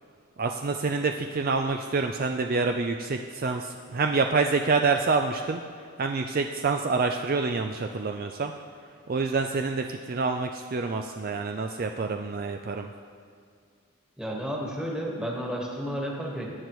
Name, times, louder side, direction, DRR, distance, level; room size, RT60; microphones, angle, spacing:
voice 1, 0.4-5.6 6.0-8.5 9.1-12.9, right 4 dB, 40° right, 5 dB, 0.4 m, -27 dB
voice 2, 14.2-16.5, equal, 5° right, -2 dB, 1.5 m, -32 dB
20.0 x 9.2 x 3.1 m, 2.1 s
head